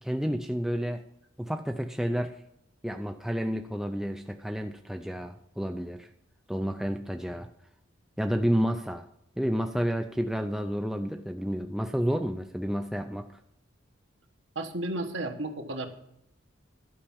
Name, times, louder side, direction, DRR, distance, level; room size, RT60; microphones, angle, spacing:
voice 1, 0.0-1.0 1.4-2.4 2.8-6.1 6.5-7.5 8.2-9.1 9.4-13.3, equal, ahead, 5 dB, 0.4 m, -30 dB
voice 2, 14.5-15.9, right 2 dB, 65° right, 5 dB, 1.3 m, -33 dB
12.0 x 5.7 x 7.2 m, 0.78 s
head